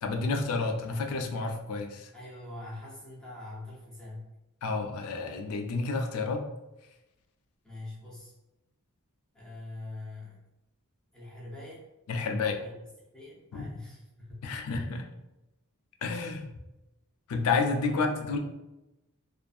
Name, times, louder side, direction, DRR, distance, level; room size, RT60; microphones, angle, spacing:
voice 1, 0.0-2.1 4.6-6.5 12.1-12.6 13.5-13.7 14.4-15.1 16.0-16.5 17.3-18.4, left 4 dB, 75° left, 5 dB, 0.4 m, -30 dB
voice 2, 2.1-4.3 7.6-8.3 9.3-10.4 11.1-11.9 12.5-12.8 13.1-14.7 17.9-18.0, left 2 dB, 5° left, -7 dB, 0.6 m, -44 dB
2.6 x 2.5 x 2.3 m, 0.96 s
head